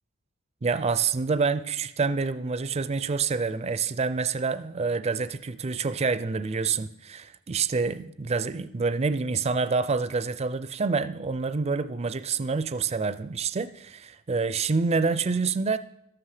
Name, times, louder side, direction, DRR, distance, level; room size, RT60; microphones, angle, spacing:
voice 1, 0.6-15.8, right 4 dB, 30° right, 0.4 m, -27 dB
13.5 x 11.5 x 4.9 m
head